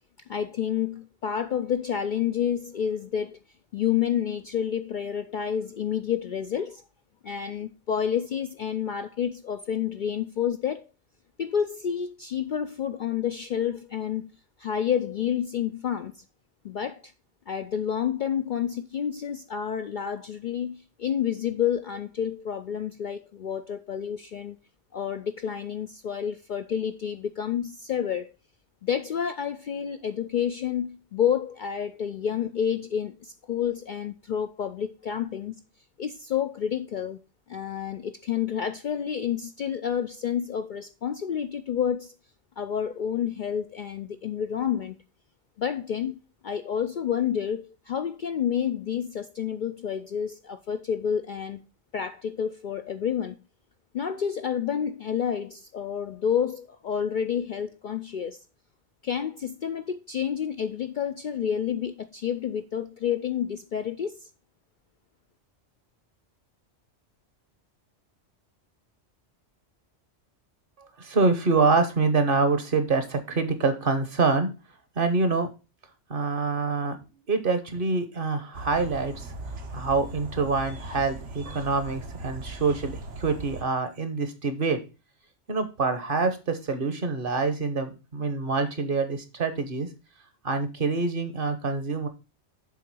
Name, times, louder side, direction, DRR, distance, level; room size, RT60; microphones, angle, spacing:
voice 1, 0.3-3.4 3.7-6.8 7.2-10.9 11.4-14.3 14.6-16.2 16.6-17.1 17.5-24.6 24.9-28.3 28.8-35.6 36.0-37.2 37.5-42.1 42.6-45.0 45.6-46.2 46.4-51.7 51.9-53.4 53.9-58.4 59.0-64.3, left 8 dB, 60° left, 0.5 m, -29 dB
voice 2, 71.0-74.5 75.0-75.5 76.1-77.0 77.3-79.3 79.7-84.8 85.5-89.9 90.4-92.1, right 4 dB, 50° right, 1.1 m, -26 dB
sound 1, 78.5-83.6, right 2 dB, 75° right, 1.5 m, -39 dB
7.3 x 3.8 x 6.1 m
omnidirectional pair, 1.2 m